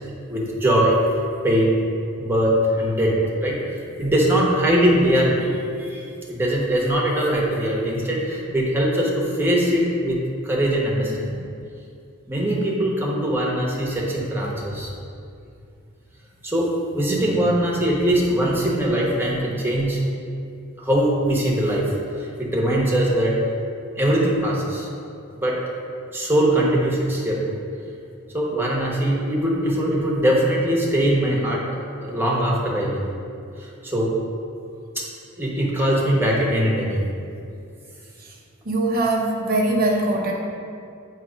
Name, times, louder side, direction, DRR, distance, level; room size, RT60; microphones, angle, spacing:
voice 1, 0.3-1.0 1.4-1.8 2.2-3.1 3.4-10.2 10.4-11.4 12.3-14.9 16.4-16.7 16.9-20.0 20.8-23.3 24.0-24.9 25.4-25.6 26.1-27.6 28.3-31.6 32.0-33.1 33.6-34.1 34.9-35.0 35.4-37.0, right 1 dB, 10° right, -4 dB, 1.0 m, -21 dB
voice 2, 38.6-40.3, right 2 dB, 45° right, -1 dB, 1.0 m, -21 dB
8.3 x 3.0 x 5.0 m, 2.5 s
head